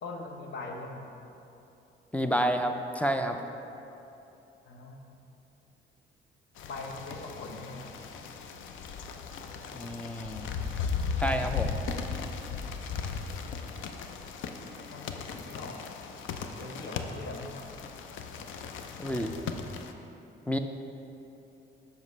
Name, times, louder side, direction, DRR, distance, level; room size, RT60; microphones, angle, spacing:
voice 1, 0.0-1.1 4.7-5.2 6.6-7.9 14.9-15.8 16.6-17.7, left 3 dB, 65° left, 1 dB, 0.9 m, -41 dB
voice 2, 2.1-3.4 9.7-10.5 11.2-11.8 19.0-19.3 20.5-20.6, equal, 5° left, 6 dB, 0.3 m, -29 dB
sound 1, 6.6-19.9, left 5 dB, 80° left, 0.4 m, -37 dB
7.1 x 5.5 x 3.2 m, 2.9 s
cardioid pair, 90°, 20 cm